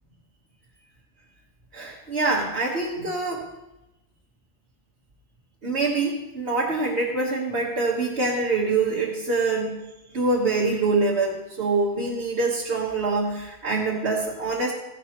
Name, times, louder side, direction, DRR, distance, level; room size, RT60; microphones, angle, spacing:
voice 1, 1.7-3.4 5.6-9.8 10.1-14.7, right 3 dB, 60° right, -6 dB, 1.7 m, -25 dB
15.0 x 11.0 x 3.0 m, 0.95 s
omnidirectional pair, 1.2 m